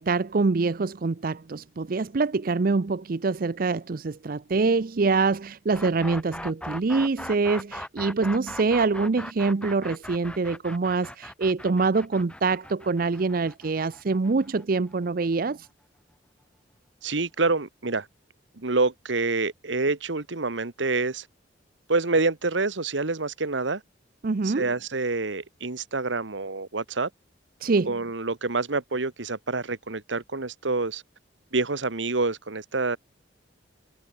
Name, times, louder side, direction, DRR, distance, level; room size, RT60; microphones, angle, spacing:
voice 1, 0.0-15.7 24.2-24.7 27.6-27.9, right 4 dB, 50° right, 0.5 m, -25 dB
sound 1, 5.7-15.5, left 1 dB, 5° left, 3.7 m, -39 dB
voice 2, 17.0-18.1 18.6-21.2 21.9-23.8 24.4-27.1 27.9-31.0 31.5-33.0, right 3 dB, 80° right, 1.5 m, -27 dB
head